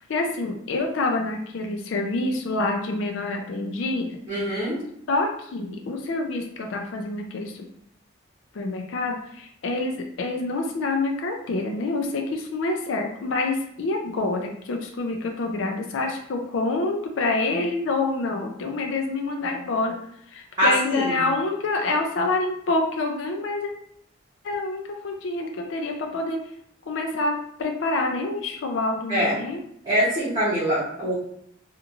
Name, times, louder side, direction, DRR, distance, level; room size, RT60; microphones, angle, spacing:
voice 1, 0.0-4.1 5.1-7.5 8.5-20.0 20.3-23.7 24.4-26.4 26.9-29.6, left 2 dB, 70° left, 3 dB, 0.4 m, -27 dB
voice 2, 4.3-4.8 20.6-21.2 29.1-29.3 29.8-31.1, equal, 25° right, -10 dB, 0.8 m, -23 dB
2.9 x 2.4 x 2.4 m, 0.72 s
head